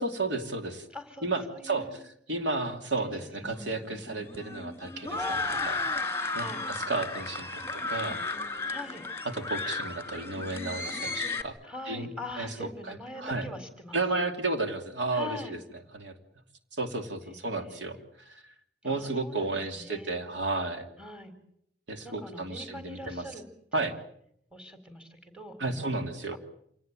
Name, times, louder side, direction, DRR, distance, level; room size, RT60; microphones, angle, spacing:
voice 1, 0.0-0.9 1.2-1.9 2.3-5.8 6.3-8.2 9.3-11.5 11.9-12.1 12.4-13.5 13.9-15.6 15.9-16.1 16.7-18.0 18.2-18.4 18.8-20.9 21.9-23.3 23.7-23.9 25.6-26.4, right 3 dB, 90° right, 5 dB, 2.9 m, -33 dB
voice 2, 0.9-2.0 3.0-3.5 6.4-6.6 8.7-9.0 11.6-14.0 15.1-15.6 17.2-18.0 18.8-20.1 21.0-21.3 22.0-23.4 23.7-23.9 24.5-25.9, left 1 dB, 5° right, 8 dB, 3.9 m, -43 dB
sound 1, 3.4-11.4, left 3 dB, 15° left, 2.2 m, -34 dB
27.0 x 18.5 x 9.1 m, 0.73 s
head